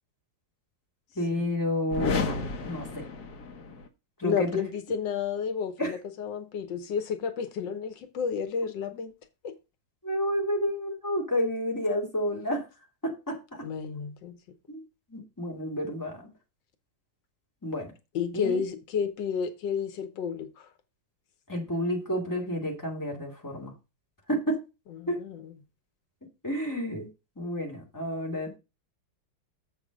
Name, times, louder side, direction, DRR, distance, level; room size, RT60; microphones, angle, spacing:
voice 1, 1.2-3.1 4.2-4.6 5.8-5.9 10.0-12.7 13.0-13.6 14.7-14.8 15.1-16.3 17.6-17.9 18.3-18.6 21.5-23.7 24.3-24.6 25.1-25.2 26.4-27.1 27.4-28.6, equal, 10° left, 2.3 m, -30 dB
sound 1, 1.9-3.9, left 4 dB, 60° left, 1.5 m, -32 dB
voice 2, 4.2-9.1 9.4-9.6 13.6-14.4 18.1-20.7 25.0-25.4, left 6 dB, 90° left, 1.6 m, -31 dB
7.3 x 5.3 x 5.1 m
omnidirectional pair, 1.9 m